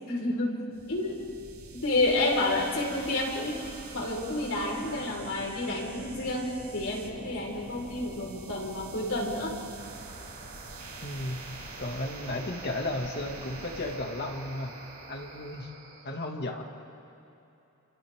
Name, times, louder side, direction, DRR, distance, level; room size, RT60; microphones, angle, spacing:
voice 1, 0.1-0.6 0.9-1.3 1.7-9.6, left 2 dB, 65° left, -2 dB, 4.7 m, -30 dB
sound 1, 0.7-16.0, right 3 dB, 85° right, 4.7 m, -45 dB
voice 2, 11.0-11.4 11.8-14.8 15.1-15.7 16.0-16.6, left 1 dB, 50° left, 1 dB, 2.2 m, -34 dB
30.0 x 27.5 x 3.7 m, 2.8 s
head